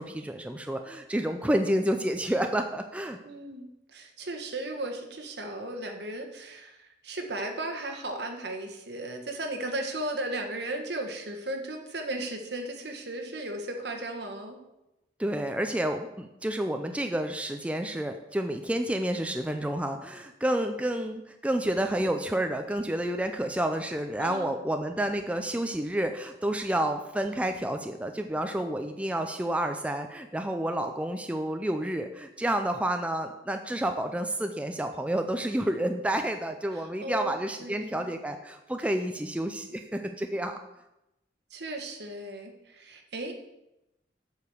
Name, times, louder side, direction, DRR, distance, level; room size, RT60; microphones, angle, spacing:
voice 1, 0.0-3.2 15.2-40.6, right 1 dB, 5° right, 5 dB, 0.5 m, -30 dB
voice 2, 3.2-14.6 24.2-24.5 36.7-37.3 37.6-38.1 41.5-43.3, right 2 dB, 65° right, 4 dB, 1.5 m, -36 dB
8.1 x 4.9 x 7.0 m, 0.90 s
head